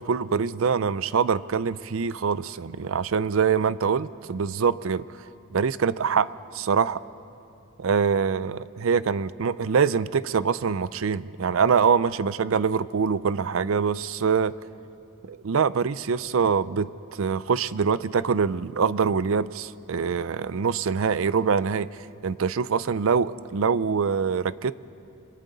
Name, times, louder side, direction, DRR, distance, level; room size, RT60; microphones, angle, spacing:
voice 1, 0.0-5.0 5.5-7.0 7.8-14.5 15.2-16.9 17.2-21.9 22.2-24.7, right 6 dB, 70° right, 17 dB, 0.5 m, -24 dB
30.0 x 22.5 x 4.0 m, 2.6 s
head